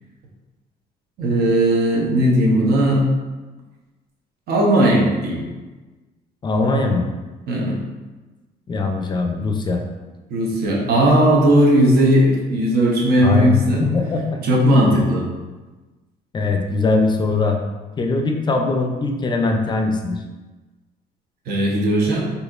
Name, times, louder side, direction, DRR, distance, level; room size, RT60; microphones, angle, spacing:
voice 1, 1.2-3.0 4.5-5.4 7.5-7.8 10.3-13.8 14.4-15.3 21.5-22.2, right 1 dB, 65° right, -2 dB, 0.9 m, -17 dB
voice 2, 6.4-7.0 8.7-9.8 13.2-14.4 16.3-17.6 18.0-20.2, left 3 dB, 25° left, 3 dB, 0.5 m, -21 dB
4.2 x 2.8 x 2.4 m, 1.2 s
cardioid pair, 110°, 17 cm